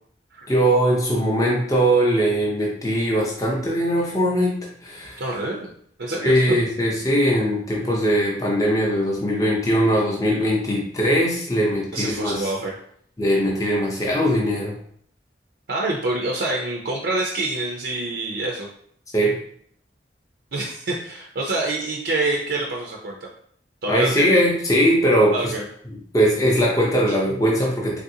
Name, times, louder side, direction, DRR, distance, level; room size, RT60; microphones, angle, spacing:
voice 1, 0.5-5.2 6.2-12.5 13.2-14.8 19.1-19.4 23.9-25.5 26.1-28.0, equal, 20° left, -3 dB, 0.5 m, -20 dB
voice 2, 5.2-5.7 6.0-6.4 11.9-12.7 15.7-18.7 20.5-23.3 23.8-24.3 25.3-25.6, right 2 dB, 70° right, -1 dB, 0.5 m, -26 dB
3.4 x 2.5 x 2.7 m, 0.64 s
head